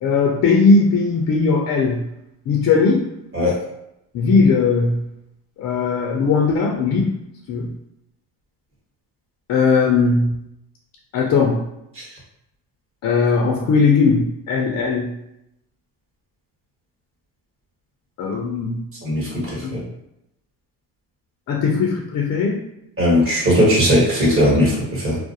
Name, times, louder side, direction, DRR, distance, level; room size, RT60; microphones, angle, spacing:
voice 1, 0.0-2.0 2.5-3.0 4.1-5.0 5.6-7.1 7.5-7.7 9.5-10.3 11.1-11.6 13.0-15.1 18.2-18.8 21.5-22.6, left 4 dB, 40° left, 0 dB, 0.4 m, -18 dB
voice 2, 19.0-19.8 23.0-25.2, equal, 30° right, -4 dB, 1.2 m, -18 dB
2.3 x 2.0 x 2.7 m, 0.82 s
cardioid pair, 105°, 42 cm